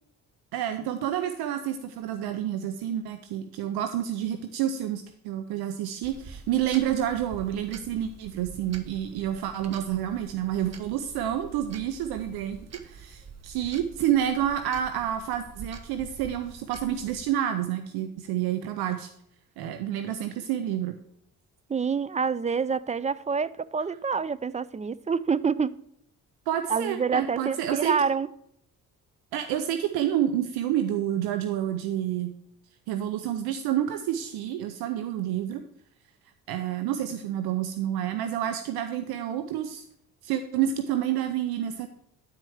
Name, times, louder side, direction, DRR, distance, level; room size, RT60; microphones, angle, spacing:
voice 1, 0.5-19.1 19.6-20.9 26.5-28.0 29.3-32.3 32.9-35.6 36.5-39.8 40.2-41.9, right 11 dB, 85° right, 0.7 m, -29 dB
sound 1, 6.0-17.3, right 5 dB, 45° right, 1.0 m, -46 dB
voice 2, 21.7-25.8 26.7-28.3, right 5 dB, 20° right, 0.4 m, -27 dB
10.5 x 4.5 x 4.8 m
supercardioid pair, 60°, 36 cm